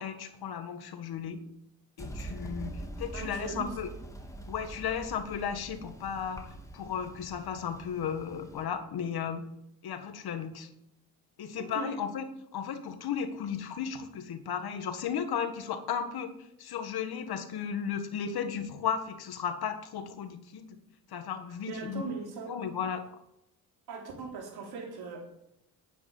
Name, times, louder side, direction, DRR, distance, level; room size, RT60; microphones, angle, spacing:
voice 1, 0.0-1.4 2.0-3.9 4.5-6.4 6.7-9.4 9.8-10.7 11.4-12.2 12.5-20.8 21.1-22.0 22.5-23.2, left 7 dB, 75° left, 8 dB, 1.9 m, -35 dB
sound 1, 2.0-8.6, right 1 dB, 10° left, 3.5 m, -44 dB
voice 2, 3.1-3.7 11.5-12.0 21.6-22.6 23.9-25.2, right 4 dB, 80° right, 1 dB, 3.9 m, -39 dB
10.5 x 9.5 x 7.3 m, 0.82 s
cardioid pair, 70°, 37 cm